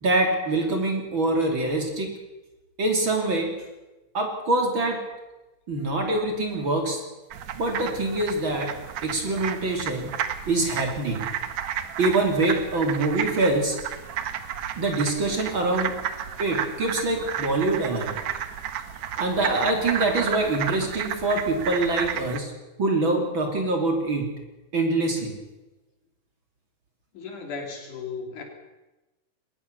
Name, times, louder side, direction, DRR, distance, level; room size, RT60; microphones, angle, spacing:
voice 1, 0.0-2.1 2.8-3.5 4.1-5.0 5.7-7.0 7.5-8.7 9.0-10.1 10.5-11.3 12.0-13.8 14.8-15.9 16.4-18.2 19.2-22.5 22.8-24.3 24.7-25.3, right 2 dB, 40° right, 2 dB, 3.4 m, -24 dB
sound 1, 7.3-22.4, right 9 dB, 65° right, 2.3 m, -32 dB
voice 2, 27.1-28.4, left 4 dB, 70° left, 3 dB, 4.5 m, -35 dB
21.5 x 19.0 x 6.8 m, 1.1 s
omnidirectional pair, 3.7 m